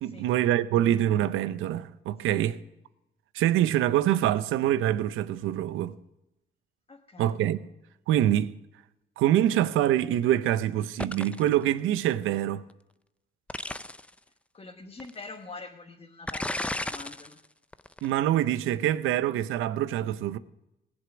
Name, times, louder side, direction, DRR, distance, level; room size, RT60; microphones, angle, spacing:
voice 1, 0.0-2.6 3.3-5.9 7.2-7.6 8.1-8.5 9.2-12.6 18.0-20.4, right 12 dB, 90° right, 0.6 m, -25 dB
voice 2, 6.9-7.4 14.5-17.4, left 3 dB, 30° left, 1.3 m, -45 dB
sound 1, 11.0-11.5 13.5-14.1 15.0-15.1 16.3-17.3 17.7-18.1, left 1 dB, 5° left, 0.4 m, -33 dB
18.5 x 7.9 x 6.1 m
cardioid pair, 90°, 20 cm